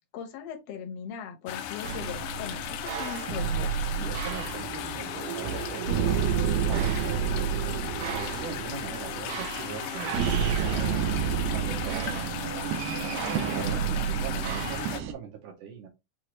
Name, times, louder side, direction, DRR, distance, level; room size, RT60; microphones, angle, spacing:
voice 1, 0.1-3.8, left 7 dB, 65° left, 1.6 m, -39 dB
sound 1, 1.5-15.0, left 11 dB, 80° left, 2.0 m, -36 dB
sound 2, 1.8-15.1, right 8 dB, 90° right, 2.3 m, -30 dB
voice 2, 3.9-11.0 11.5-15.9, right 7 dB, 75° right, 2.5 m, -41 dB
6.4 x 2.6 x 3.0 m
omnidirectional pair, 3.9 m